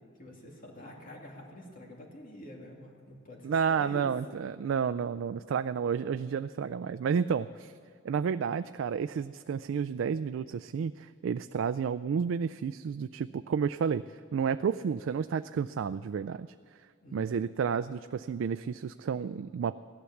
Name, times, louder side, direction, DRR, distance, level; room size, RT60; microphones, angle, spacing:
voice 1, 0.2-4.1 17.0-17.4, equal, 45° left, -1 dB, 2.6 m, -47 dB
voice 2, 3.4-7.7 8.0-16.5 17.1-19.8, right 6 dB, 70° right, 11 dB, 0.3 m, -31 dB
16.5 x 11.5 x 7.1 m, 2.1 s
head